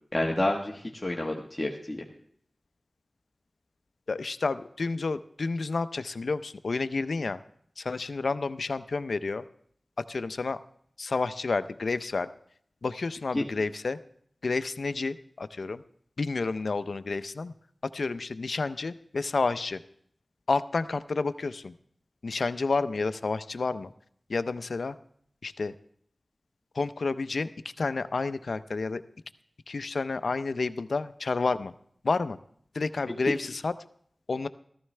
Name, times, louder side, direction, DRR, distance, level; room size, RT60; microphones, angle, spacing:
voice 1, 0.1-2.0 13.3-13.4, left 1 dB, 25° left, -1 dB, 1.3 m, -29 dB
voice 2, 4.1-7.4 7.8-9.4 10.1-10.6 11.0-12.3 12.8-14.0 14.4-15.8 16.2-17.5 17.9-19.8 20.5-21.7 22.2-23.9 24.3-24.9 25.4-25.7 26.7-27.5 27.8-29.0 29.7-31.7 32.0-32.4 32.7-33.7 34.3-34.5, left 3 dB, 80° left, 13 dB, 0.5 m, -30 dB
14.5 x 14.0 x 3.3 m, 0.64 s
wide cardioid pair, 80°, 0 cm